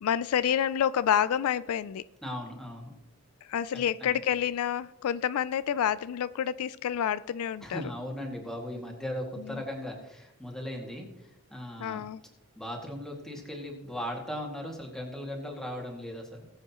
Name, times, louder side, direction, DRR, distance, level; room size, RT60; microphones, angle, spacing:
voice 1, 0.0-2.0 3.5-7.8 9.5-9.6 11.8-12.2, left 9 dB, 75° left, 16 dB, 0.3 m, -28 dB
voice 2, 2.2-2.9 3.7-4.2 7.6-12.1 12.6-16.5, equal, ahead, -1 dB, 2.0 m, -38 dB
19.5 x 7.9 x 2.9 m, 0.94 s
head